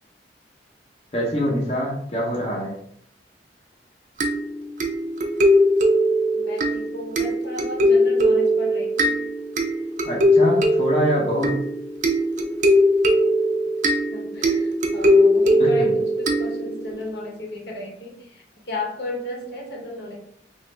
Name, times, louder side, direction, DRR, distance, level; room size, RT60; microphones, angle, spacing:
voice 1, 1.1-2.8 10.0-11.6 15.8-15.9, equal, 30° left, -4 dB, 0.6 m, -24 dB
sound 1, 4.2-17.0, equal, 45° right, 0.4 m, -20 dB
voice 2, 6.3-9.2 14.1-20.2, left 1 dB, 65° left, -1 dB, 0.8 m, -34 dB
3.0 x 2.4 x 3.2 m, 0.68 s
head